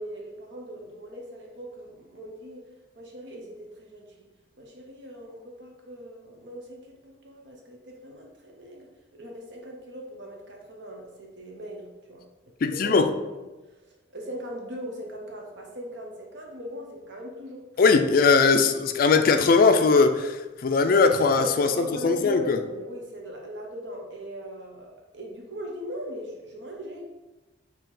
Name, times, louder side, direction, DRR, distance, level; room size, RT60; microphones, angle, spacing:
voice 1, 0.0-2.6 3.0-4.3 4.6-12.2 12.7-13.0 13.3-13.4 14.1-18.3 21.3-27.0, equal, 65° right, 0 dB, 0.9 m, -40 dB
voice 2, 12.6-13.1 17.8-22.6, left 4 dB, 50° left, 7 dB, 0.3 m, -20 dB
4.5 x 2.9 x 3.7 m, 1.1 s
head